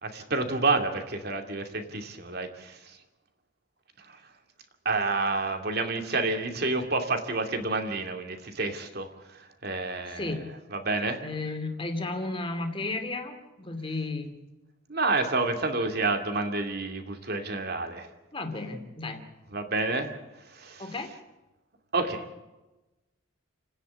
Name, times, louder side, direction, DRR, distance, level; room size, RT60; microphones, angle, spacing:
voice 1, 0.0-3.0 4.0-4.2 4.8-10.4 10.7-11.2 14.9-18.1 19.5-20.9 21.9-22.4, right 3 dB, 50° right, 5 dB, 2.5 m, -29 dB
voice 2, 10.1-10.5 11.2-14.3 18.3-19.2 20.8-21.2, left 2 dB, 25° left, 5 dB, 2.6 m, -33 dB
30.0 x 10.0 x 8.6 m, 1.1 s
head